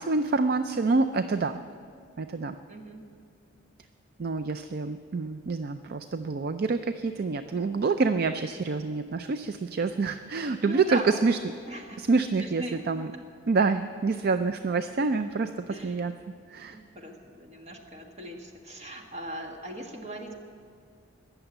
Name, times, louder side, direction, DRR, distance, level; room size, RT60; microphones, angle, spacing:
voice 1, 0.0-1.6 2.2-2.6 4.2-11.4 12.0-13.1 13.5-16.1 16.5-16.8, right 4 dB, 50° right, 10 dB, 0.4 m, -27 dB
voice 2, 2.7-3.1 10.6-11.1 11.7-12.1 12.4-13.2 15.7-16.1 16.7-20.4, equal, 35° right, 2 dB, 1.6 m, -40 dB
21.0 x 7.0 x 8.0 m, 2.4 s
head